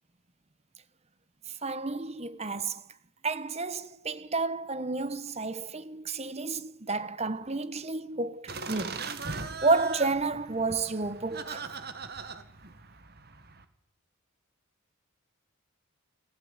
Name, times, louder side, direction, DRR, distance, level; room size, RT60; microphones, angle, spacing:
voice 1, 1.6-2.8 3.2-9.0 9.6-11.7, right 3 dB, 30° right, 1.2 m, -31 dB
sound 1, 8.5-13.6, right 4 dB, 45° right, 1.9 m, -40 dB
27.5 x 16.0 x 9.7 m
head